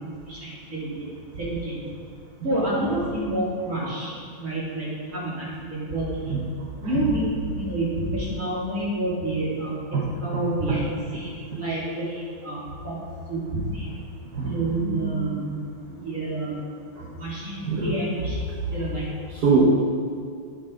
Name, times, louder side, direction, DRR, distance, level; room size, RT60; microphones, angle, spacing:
voice 1, 0.3-0.9 1.3-1.8 2.4-6.1 6.8-9.7 10.2-10.8 11.1-13.0 13.3-13.4 13.7-13.9 14.4-15.6 15.9-16.8 17.2-19.0, right 1 dB, 40° right, -7 dB, 3.1 m, -29 dB
voice 2, 6.2-7.1 9.9-10.1 10.3-10.4 10.7-10.8 11.1-11.2 11.5-11.6 14.3-15.5 16.9-17.1 17.6-18.0 19.3-19.7, right 4 dB, 55° right, -4 dB, 1.5 m, -26 dB
8.7 x 7.8 x 5.1 m, 2.3 s
omnidirectional pair, 2.3 m